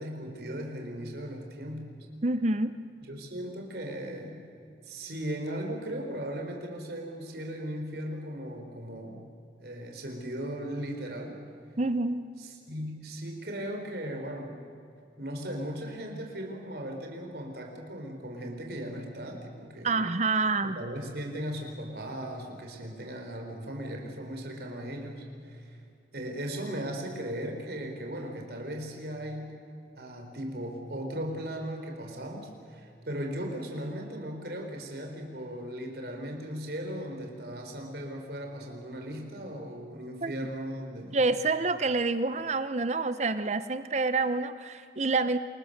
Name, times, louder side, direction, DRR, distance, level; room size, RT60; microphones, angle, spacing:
voice 1, 0.0-1.9 3.0-4.5 4.8-9.3 9.6-11.4 12.4-14.6 15.2-20.0 20.6-25.8 26.1-29.5 30.0-41.2, equal, 60° right, 2 dB, 4.1 m, -37 dB
voice 2, 2.2-2.7 11.8-12.2 19.8-20.8 40.2-40.3 41.1-45.4, right 3 dB, 40° right, 12 dB, 0.7 m, -27 dB
28.5 x 21.5 x 6.6 m, 2.5 s
head